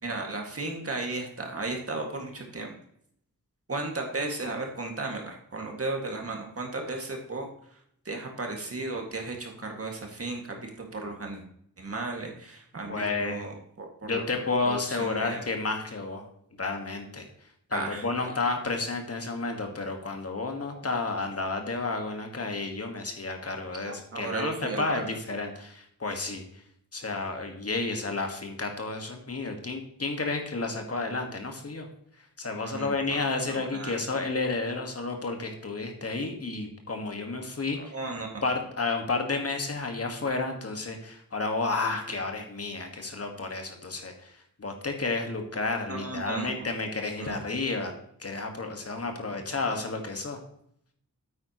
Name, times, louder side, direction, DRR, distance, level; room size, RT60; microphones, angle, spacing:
voice 1, 0.0-2.7 3.7-7.5 8.1-11.4 11.8-14.2 14.6-15.4 17.7-18.3 23.9-25.0 32.6-33.9 37.8-38.5 45.9-46.7 47.2-47.4 49.6-49.8, right 3 dB, 40° right, 1 dB, 2.1 m, -35 dB
voice 2, 12.9-13.4 14.0-16.2 16.6-17.2 17.7-26.4 26.9-31.9 32.4-37.9 38.4-44.3 44.6-47.9 48.2-50.4, left 3 dB, 45° left, 4 dB, 1.7 m, -31 dB
8.9 x 8.7 x 3.0 m, 0.69 s
cardioid pair, 70°, 34 cm